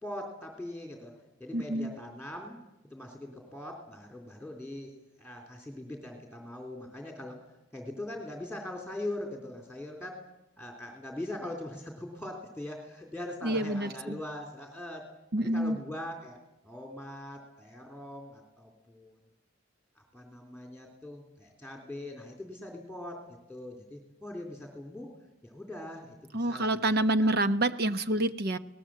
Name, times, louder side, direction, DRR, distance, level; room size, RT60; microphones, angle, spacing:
voice 1, 0.0-1.1 1.4-2.6 2.9-7.5 7.7-10.2 10.6-15.1 15.4-16.4 16.6-19.2 19.9-25.1 25.4-26.8 27.2-27.4, left 1 dB, ahead, 0 dB, 3.3 m, -41 dB
voice 2, 1.5-1.9 13.4-14.2 15.3-15.8 26.3-28.6, right 1 dB, 50° right, 10 dB, 1.0 m, -27 dB
29.5 x 19.0 x 7.6 m, 0.90 s
head